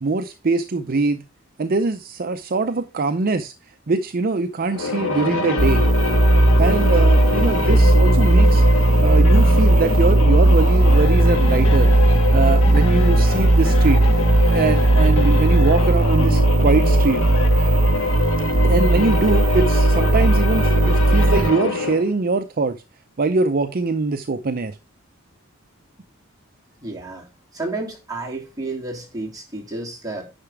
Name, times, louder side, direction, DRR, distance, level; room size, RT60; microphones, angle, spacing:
voice 1, 0.0-1.2 1.6-3.5 3.9-5.8 6.6-11.9 12.3-14.1 14.5-17.2 18.6-22.8 23.2-24.7, right 3 dB, 45° right, 0.6 m, -22 dB
sound 1, 4.6-22.1, left 3 dB, 80° left, 1.9 m, -25 dB
sound 2, 5.6-21.5, right 2 dB, 75° right, 1.0 m, -16 dB
sound 3, 6.5-15.3, left 1 dB, 65° left, 4.2 m, -39 dB
voice 2, 26.8-27.3 27.5-30.3, right 2 dB, 20° right, 3.0 m, -31 dB
10.0 x 5.9 x 3.4 m
head